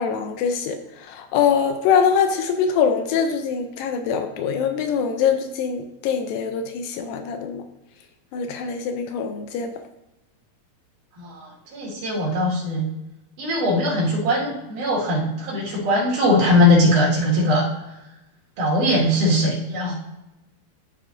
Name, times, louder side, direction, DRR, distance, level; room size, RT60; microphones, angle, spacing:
voice 1, 0.0-7.6 8.3-9.7, left 7 dB, 80° left, 7 dB, 2.2 m, -23 dB
voice 2, 11.2-12.9 13.4-17.7 18.6-19.9, left 1 dB, 65° right, -5 dB, 3.3 m, -20 dB
12.5 x 4.8 x 2.6 m, 0.97 s
omnidirectional pair, 4.2 m